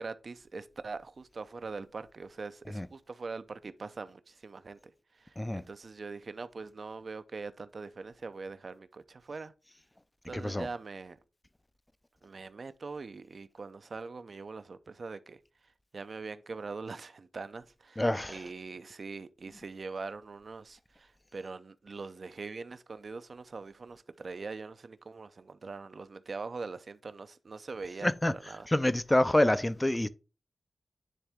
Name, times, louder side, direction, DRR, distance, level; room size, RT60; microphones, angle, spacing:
voice 1, 0.0-9.5 10.3-11.2 12.2-28.7, right 4 dB, 65° right, 0.5 m, -42 dB
voice 2, 10.3-10.7 18.0-18.4 28.0-28.3 28.7-30.1, left 1 dB, 20° left, 0.5 m, -27 dB
10.0 x 3.4 x 3.5 m
cardioid pair, 55°, 0 cm